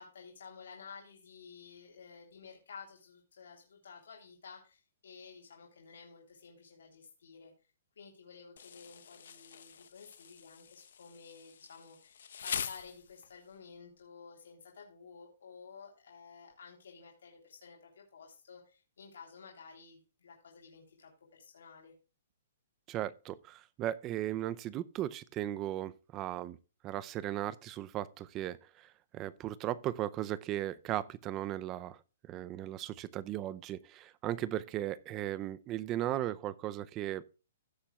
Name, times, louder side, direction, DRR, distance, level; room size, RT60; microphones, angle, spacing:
voice 1, 0.0-7.5 8.0-21.9, left 5 dB, 80° left, 3.3 m, -53 dB
Insect, 8.6-13.5, left 8 dB, 65° left, 0.9 m, -44 dB
voice 2, 22.9-26.6 26.8-32.0 32.3-37.2, right 13 dB, 20° right, 0.5 m, -37 dB
16.0 x 7.2 x 2.3 m
hypercardioid pair, 175°, 0 cm